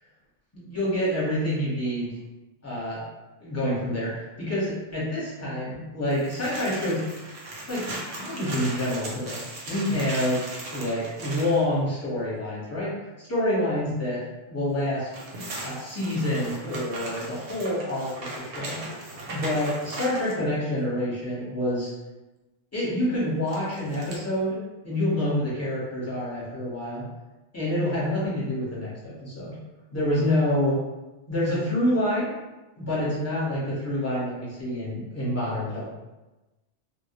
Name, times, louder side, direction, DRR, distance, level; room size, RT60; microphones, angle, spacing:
voice 1, 0.5-2.1 2.6-3.0 3.4-7.0 7.7-10.5 10.7-12.9 13.2-15.1 15.6-19.0 19.3-21.9 22.7-24.6 24.8-27.0 27.5-29.6 29.9-30.8 31.3-32.3 32.8-35.8, left 1 dB, 15° left, -9 dB, 0.8 m, -27 dB
sound 1, 6.1-11.6 14.9-20.4 23.5-24.2, right 2 dB, 60° right, 0.7 m, -38 dB
2.1 x 2.1 x 2.8 m, 1.1 s
omnidirectional pair, 1.3 m